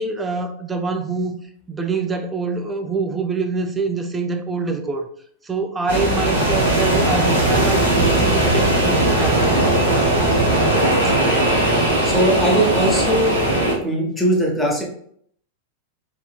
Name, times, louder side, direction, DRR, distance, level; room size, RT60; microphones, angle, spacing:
voice 1, 0.0-1.4 1.7-5.1 5.4-9.5 9.9-10.2, right 4 dB, 15° right, 5 dB, 0.4 m, -25 dB
sound 1, 5.9-13.7, right 1 dB, 80° right, 0.9 m, -18 dB
voice 2, 11.0-11.4 12.0-13.4 13.8-14.9, right 1 dB, 5° left, -2 dB, 1.0 m, -20 dB
3.7 x 2.6 x 2.3 m, 0.64 s
figure-of-eight pair, 90°, 0 cm